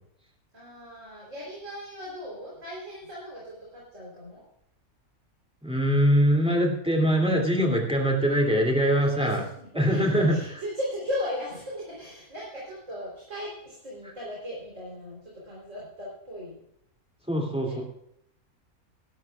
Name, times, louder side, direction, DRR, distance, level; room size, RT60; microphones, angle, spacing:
voice 1, 0.5-4.4 8.9-16.6 17.4-17.8, left 1 dB, 55° right, -5 dB, 4.0 m, -37 dB
voice 2, 5.6-9.4 9.7-10.3 17.3-17.8, equal, 5° right, 0 dB, 2.5 m, -23 dB
18.0 x 12.5 x 2.4 m, 0.74 s
omnidirectional pair, 1.6 m